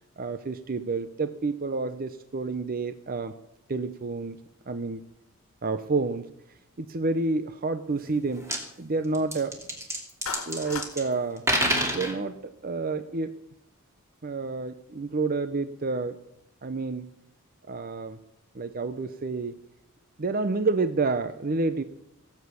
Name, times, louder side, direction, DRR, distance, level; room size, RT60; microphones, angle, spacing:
voice 1, 0.2-3.3 3.7-4.4 4.7-5.0 5.6-6.3 6.8-8.5 8.8-9.6 10.5-11.4 11.9-13.4 14.2-16.2 16.6-17.1 17.7-18.2 18.5-19.6 20.2-21.8, right 3 dB, 40° right, 11 dB, 0.6 m, -29 dB
sound 1, 8.1-8.2 8.4-8.6 9.1-11.0 11.4-12.1, equal, 15° right, 2.8 m, -27 dB
Clapping, 10.3-10.9, left 5 dB, 75° left, 1.6 m, -35 dB
17.5 x 8.3 x 6.9 m, 0.81 s
head